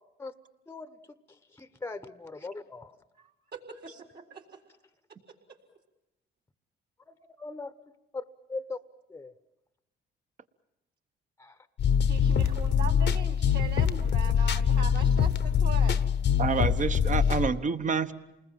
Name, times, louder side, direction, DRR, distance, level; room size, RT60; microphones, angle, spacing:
voice 1, 1.6-2.9 7.4-7.7 8.1-8.2 8.5-8.8 9.1-9.3 11.4-11.6, left 3 dB, 10° left, 13 dB, 1.0 m, -38 dB
voice 2, 3.1-4.6 5.5-5.6 12.1-16.0, right 5 dB, 55° right, 2 dB, 4.2 m, -41 dB
sound 1, 11.8-17.5, left 7 dB, 60° left, 1.0 m, -24 dB
voice 3, 16.4-18.1, right 5 dB, 40° right, 11 dB, 1.1 m, -28 dB
28.5 x 20.5 x 7.5 m, 0.94 s
cardioid pair, 90°, 20 cm